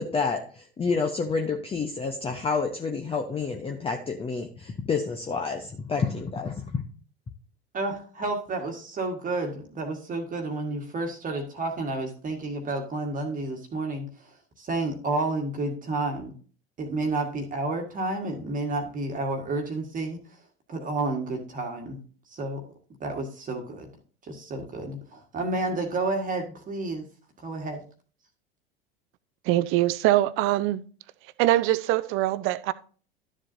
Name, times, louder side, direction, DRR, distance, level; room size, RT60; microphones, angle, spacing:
voice 1, 0.0-6.8, left 4 dB, 20° left, 0.9 m, -29 dB
voice 2, 7.7-16.3 16.8-20.2 20.7-22.0 22.3-22.6 23.0-23.9 24.2-27.1 27.4-27.8, right 2 dB, 25° right, 1.6 m, -30 dB
voice 3, 29.5-30.8 31.4-32.7, right 15 dB, 45° right, 0.6 m, -23 dB
12.5 x 7.4 x 2.6 m
figure-of-eight pair, 75°, 30 cm